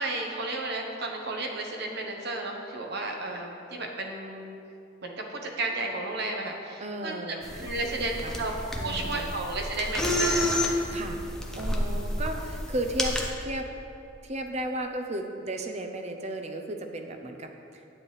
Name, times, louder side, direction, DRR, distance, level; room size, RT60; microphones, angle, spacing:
voice 1, 0.0-4.5 5.0-7.2 7.6-8.5 8.8-11.1, right 2 dB, 55° right, 1 dB, 1.0 m, -33 dB
voice 2, 6.8-7.9 8.2-8.5 8.8-9.3 10.9-11.2 11.5-13.7 14.2-17.5, right 1 dB, 35° right, 5 dB, 0.6 m, -34 dB
sound 1, 7.4-13.3, left 1 dB, 5° left, 0.6 m, -30 dB
9.7 x 9.0 x 3.2 m, 2.7 s
head